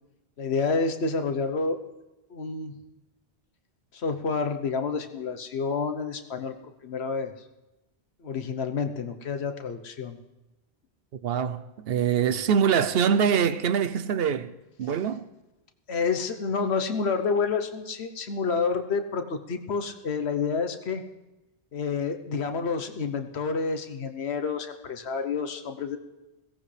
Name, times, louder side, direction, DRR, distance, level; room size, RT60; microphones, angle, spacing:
voice 1, 0.4-1.8 2.3-2.8 3.9-7.3 8.2-10.2 15.9-21.0 21.7-26.0, left 5 dB, 75° left, 1.3 m, -29 dB
voice 2, 11.2-15.3, right 7 dB, 65° right, 0.9 m, -24 dB
21.5 x 17.0 x 3.3 m
omnidirectional pair, 1.1 m